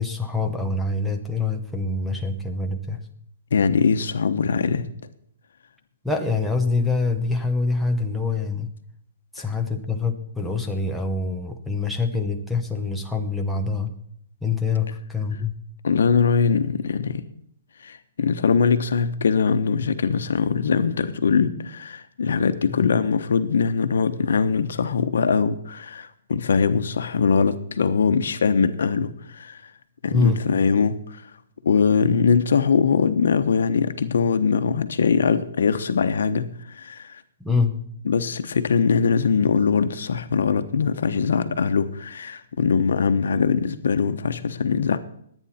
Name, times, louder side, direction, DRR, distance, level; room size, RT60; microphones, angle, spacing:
voice 1, 0.0-3.1 6.0-8.7 9.3-13.9 14.4-15.6 22.8-22.9 30.1-30.4 37.4-37.8, left 4 dB, ahead, 0 dB, 0.9 m, -25 dB
voice 2, 3.5-4.9 15.8-17.2 17.8-29.6 30.0-31.2 31.6-37.2 38.0-45.0, left 5 dB, 80° left, 10 dB, 1.1 m, -22 dB
21.5 x 9.1 x 4.3 m, 0.69 s
hypercardioid pair, 170°, 0 cm